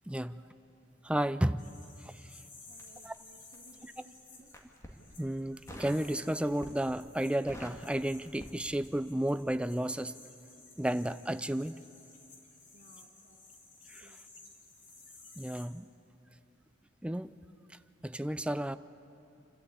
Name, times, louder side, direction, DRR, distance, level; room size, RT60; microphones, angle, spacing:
voice 1, 0.1-0.4 1.0-1.7 2.0-2.2 3.0-3.1 3.8-3.9 5.2-10.1 10.8-11.7 13.9-14.2 15.4-15.9 17.0-17.3 17.7-18.8, right 1 dB, 5° right, 12 dB, 0.4 m, -32 dB
sound 1, 1.6-15.6, left 3 dB, 45° left, 3.1 m, -56 dB
Crackle, 2.7-3.9 4.4-5.0 5.7-6.1 6.4-6.9 7.2-9.1 9.4-9.6, equal, 15° left, 2.1 m, -48 dB
voice 2, 2.7-4.5 12.7-13.4 14.0-14.2, right 1 dB, 75° right, -1 dB, 1.7 m, -60 dB
28.0 x 13.0 x 8.5 m, 2.7 s
head